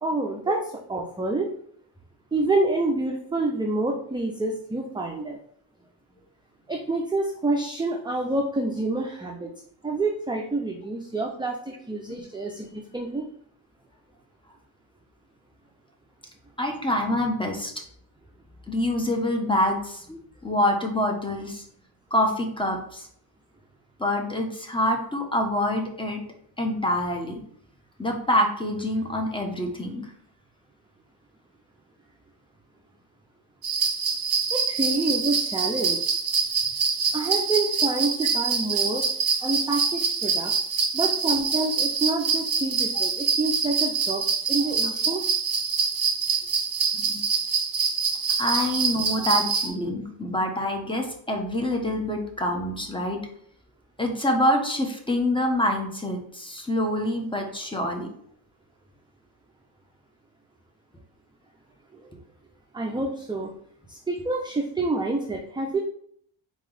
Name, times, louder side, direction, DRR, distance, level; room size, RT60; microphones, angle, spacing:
voice 1, 0.0-1.6 2.3-5.4 6.7-9.5 9.8-13.2 34.5-36.1 37.1-39.1 39.4-40.5 40.9-45.2 61.9-62.1 62.7-63.5 63.9-65.8, right 2 dB, 10° right, 1 dB, 0.5 m, -28 dB
voice 2, 16.6-17.7 18.7-21.6 22.1-23.1 24.0-26.2 26.6-27.4 28.0-30.1 46.9-47.2 48.4-53.2 54.0-58.1, left 1 dB, 10° left, 2 dB, 1.0 m, -26 dB
sound 1, 33.6-49.7, right 5 dB, 50° right, 1.3 m, -25 dB
4.2 x 3.0 x 3.8 m, 0.64 s
cardioid pair, 80°, 48 cm